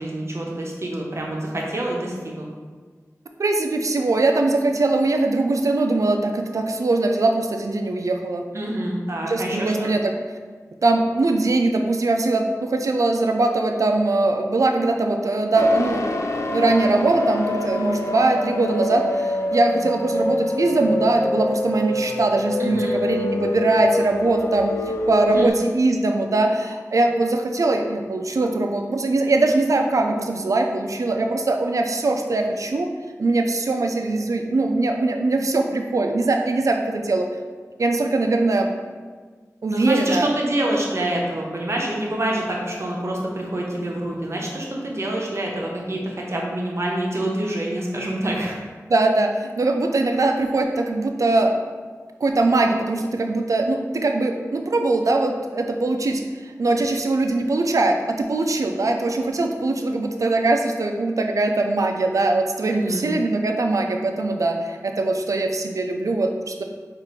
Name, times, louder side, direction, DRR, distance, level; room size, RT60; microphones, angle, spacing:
voice 1, 0.0-2.5 8.5-9.9 22.6-23.0 25.3-25.5 39.7-48.6 62.6-63.1, right 1 dB, 50° right, -2 dB, 0.7 m, -26 dB
voice 2, 3.4-8.4 9.2-10.1 10.8-16.1 16.5-32.9 33.2-37.3 37.8-38.7 39.6-40.3 48.9-51.5 52.2-66.6, right 2 dB, 70° right, 4 dB, 0.3 m, -21 dB
sound 1, 15.5-25.5, left 2 dB, 55° left, 0.4 m, -26 dB
4.6 x 2.5 x 3.1 m, 1.5 s
wide cardioid pair, 60°, 6 cm